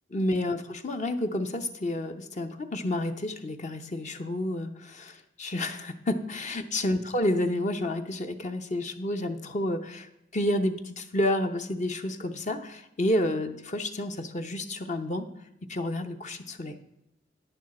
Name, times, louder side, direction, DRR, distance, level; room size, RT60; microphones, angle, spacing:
voice 1, 0.1-15.3 15.7-16.8, left 1 dB, 40° left, 7 dB, 0.7 m, -30 dB
10.5 x 9.0 x 4.2 m, 0.83 s
head